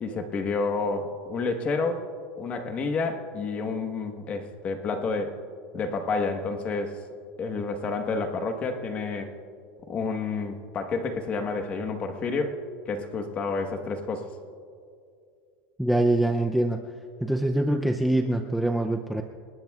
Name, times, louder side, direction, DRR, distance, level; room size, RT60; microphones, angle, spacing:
voice 1, 0.0-2.0 2.4-5.4 5.7-7.0 7.4-9.3 9.9-12.6 12.9-14.3, left 4 dB, 25° left, 5 dB, 1.2 m, -29 dB
voice 2, 15.8-16.8 17.2-19.2, right 1 dB, ahead, 3 dB, 0.5 m, -24 dB
30.0 x 20.0 x 2.4 m, 2.4 s
supercardioid pair, 170°, 5 cm